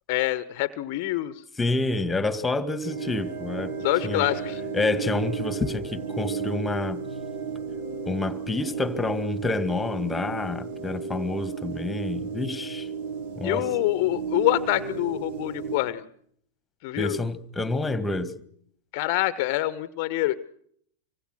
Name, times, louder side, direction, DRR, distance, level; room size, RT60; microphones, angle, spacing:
voice 1, 0.1-1.4 3.8-4.6 13.4-16.0 16.8-17.2 18.9-20.3, left 16 dB, 45° left, 1.1 m, -26 dB
voice 2, 1.6-3.8 4.0-4.3 4.7-7.0 8.1-12.9 13.4-13.7 17.0-18.3, left 3 dB, 10° left, 2.1 m, -28 dB
sound 1, 2.8-15.8, right 5 dB, 55° right, 5.1 m, -33 dB
27.0 x 25.0 x 6.3 m
figure-of-eight pair, 90°, 0 cm